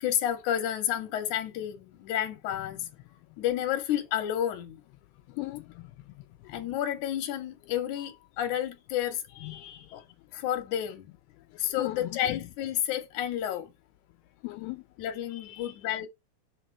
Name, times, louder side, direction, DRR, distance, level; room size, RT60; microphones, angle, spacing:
voice 1, 0.0-2.8 3.4-4.8 6.5-9.2 9.9-10.0 10.3-11.1 11.6-13.7 15.0-16.1, left 11 dB, 60° left, 2.4 m, -30 dB
voice 2, 5.4-5.9 9.4-10.1 11.8-12.4 14.4-14.8 15.3-15.7, left 19 dB, 80° left, 2.4 m, -38 dB
7.0 x 3.6 x 4.4 m
omnidirectional pair, 4.6 m